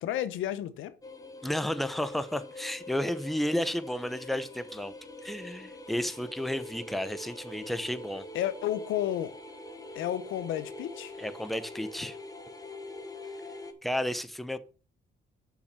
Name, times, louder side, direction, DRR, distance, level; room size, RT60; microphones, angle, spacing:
voice 1, 0.0-0.9 8.3-9.4 9.9-11.1, left 11 dB, 85° left, 0.9 m, -31 dB
sound 1, 1.0-13.7, left 2 dB, 15° left, 1.4 m, -44 dB
voice 2, 1.4-4.9 5.2-8.3 11.2-12.2 13.8-14.6, left 1 dB, ahead, 0.8 m, -32 dB
6.3 x 5.9 x 6.9 m
cardioid pair, 90°, 20 cm